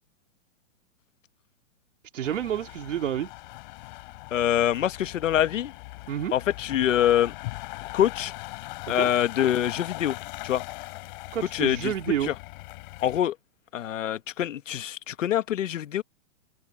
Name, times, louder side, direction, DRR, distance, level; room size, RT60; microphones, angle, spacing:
voice 1, 2.1-3.3 6.1-6.3 8.9-9.1 11.3-12.3, right 10 dB, 75° right, 2.7 m, -29 dB
sound 1, 2.2-13.2, left 23 dB, 40° left, 6.4 m, -40 dB
voice 2, 4.3-5.7 6.3-7.3 7.9-8.3 8.9-10.2 10.4-10.6 11.5-11.9 12.2-12.3 13.0-13.3 13.7-16.0, left 11 dB, 75° left, 1.3 m, -25 dB
open air
hypercardioid pair, 155°, 38 cm